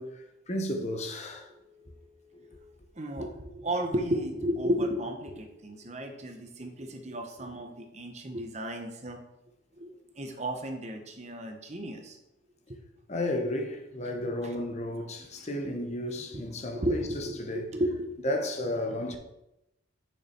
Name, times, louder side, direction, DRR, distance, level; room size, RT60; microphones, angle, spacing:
voice 1, 0.0-1.5 2.3-2.5 13.1-17.7 18.2-19.2, left 1 dB, 35° left, 0.9 m, -33 dB
voice 2, 1.6-9.2 9.8-12.2 12.7-12.8 15.4-15.5 16.7-18.2, equal, 35° right, 1.0 m, -34 dB
6.8 x 5.8 x 4.4 m
head